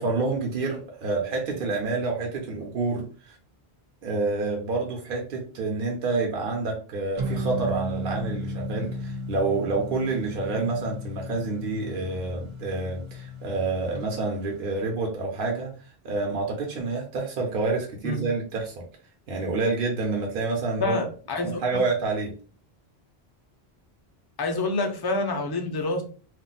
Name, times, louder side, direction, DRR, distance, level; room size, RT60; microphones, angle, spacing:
voice 1, 0.0-3.4 4.0-15.8 16.0-18.8 19.3-21.0 21.4-22.3, right 3 dB, 65° right, 1 dB, 0.8 m, -28 dB
sound 1, 7.2-14.0, equal, 40° right, 0.4 m, -34 dB
voice 2, 20.8-21.6 24.4-26.0, left 2 dB, 35° left, 4 dB, 0.4 m, -27 dB
2.4 x 2.1 x 3.8 m, 0.39 s
omnidirectional pair, 1.1 m